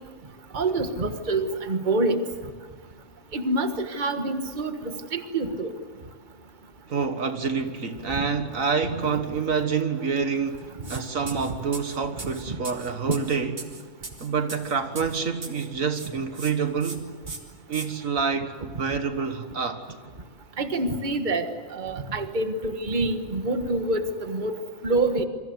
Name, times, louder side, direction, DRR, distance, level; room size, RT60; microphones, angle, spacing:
voice 1, 0.5-2.2 3.3-5.7 8.2-8.3 9.0-9.1 12.5-12.6 20.6-24.5 24.8-25.3, right 2 dB, 35° right, 1.6 m, -26 dB
voice 2, 6.9-13.7 14.2-17.1 17.7-19.8, right 5 dB, 70° right, 1.9 m, -27 dB
sound 1, 10.8-11.0 11.3-15.7 15.9-16.5 16.8-17.0 17.3-17.9, right 3 dB, 50° right, 2.6 m, -39 dB
27.5 x 23.5 x 7.9 m
omnidirectional pair, 1.5 m